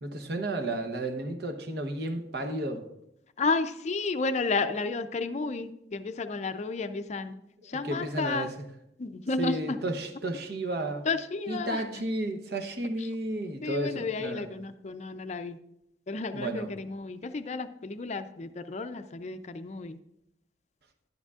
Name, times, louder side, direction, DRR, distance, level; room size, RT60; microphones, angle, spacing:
voice 1, 0.0-2.9 7.6-8.7 9.4-11.1 11.5-14.5 16.3-16.7, right 1 dB, 60° right, 6 dB, 0.9 m, -33 dB
voice 2, 3.4-7.3 7.7-8.5 9.0-9.8 11.1-11.8 13.6-15.6 16.1-20.0, left 3 dB, 40° left, 10 dB, 0.4 m, -32 dB
10.5 x 10.5 x 2.4 m, 0.80 s
head